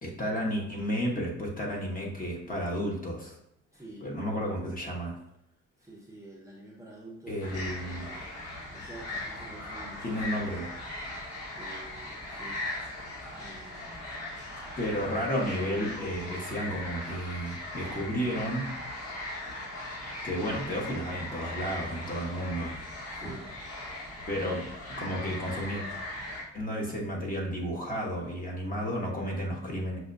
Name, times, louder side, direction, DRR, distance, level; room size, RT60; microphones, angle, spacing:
voice 1, 0.0-3.4 4.0-5.1 7.3-8.3 10.0-10.7 14.8-18.7 20.2-22.8 23.2-23.3 24.3-25.8 26.5-30.0, equal, 30° left, -2 dB, 1.2 m, -32 dB
voice 2, 3.7-4.1 5.8-7.4 7.8-8.3 8.7-10.4 11.6-12.6 13.3-14.1 23.1-23.5 23.8-24.0, right 1 dB, 10° right, -4 dB, 0.7 m, -48 dB
sound 1, 7.4-26.4, left 1 dB, 55° left, 1.4 m, -39 dB
6.0 x 2.2 x 2.6 m, 0.82 s
cardioid pair, 90°, 30 cm